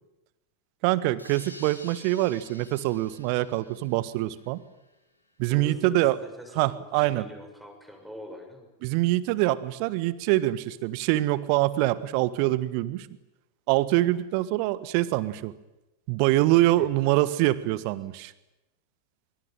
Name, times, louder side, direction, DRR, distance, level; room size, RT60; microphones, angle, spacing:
voice 1, 0.8-4.6 5.4-6.2 6.5-7.2 8.8-13.1 13.7-15.5 16.1-18.3, right 17 dB, 45° right, 16 dB, 1.5 m, -24 dB
sound 1, 1.2-4.9, left 2 dB, 85° left, 4.2 m, -49 dB
voice 2, 5.5-8.7 16.8-16.9, left 1 dB, ahead, 4 dB, 6.6 m, -44 dB
24.0 x 23.5 x 9.2 m, 0.96 s
figure-of-eight pair, 90°, 0 cm